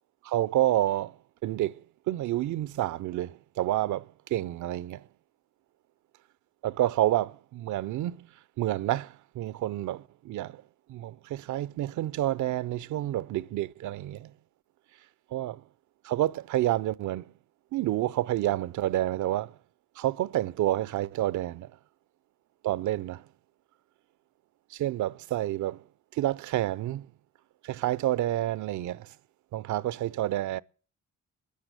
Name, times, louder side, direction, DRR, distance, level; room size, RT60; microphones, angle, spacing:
voice 1, 0.2-1.2 1.4-1.8 2.1-5.0 6.6-8.3 8.6-10.6 10.9-14.3 15.3-15.6 16.0-17.3 17.7-19.5 20.0-21.7 22.6-23.2 24.7-25.8 26.1-27.1 27.6-29.1 29.5-30.6, right 14 dB, 75° right, 0.6 m, -29 dB
13.5 x 9.8 x 8.1 m
cardioid pair, 90°, 30 cm